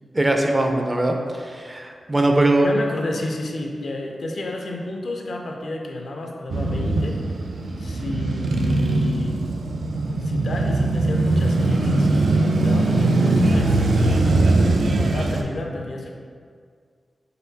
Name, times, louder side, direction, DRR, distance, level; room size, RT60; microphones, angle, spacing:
voice 1, 0.1-2.7, right 2 dB, 20° right, 2 dB, 0.4 m, -21 dB
voice 2, 2.6-7.2 7.8-9.4 10.2-14.0 14.8-16.1, left 2 dB, 65° left, 1 dB, 0.5 m, -31 dB
Male speech man speaking / Motorcycle / Idling, 6.5-15.4, right 2 dB, 85° right, 0.4 m, -20 dB
4.4 x 4.1 x 2.7 m, 2.1 s
wide cardioid pair, 130°, 0 cm